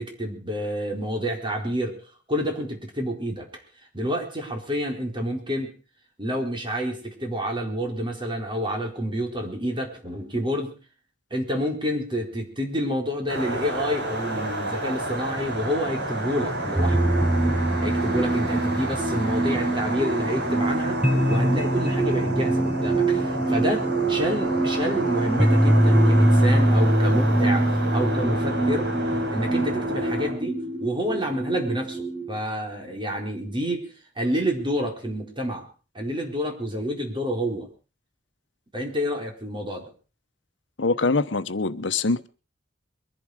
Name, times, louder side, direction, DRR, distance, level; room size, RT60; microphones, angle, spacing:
voice 1, 0.0-2.0 2.3-3.5 3.9-5.7 6.2-10.7 11.3-17.1 17.8-21.0 21.3-28.9 29.3-33.9 34.2-35.7 35.9-37.7 38.7-39.9, equal, 25° right, 4.4 m, -28 dB
sound 1, 13.3-30.3, right 1 dB, 65° right, 6.3 m, -30 dB
sound 2, 16.7-32.3, right 1 dB, 5° right, 1.4 m, -23 dB
voice 2, 40.8-42.3, left 3 dB, 80° left, 1.0 m, -24 dB
22.5 x 11.0 x 4.9 m
head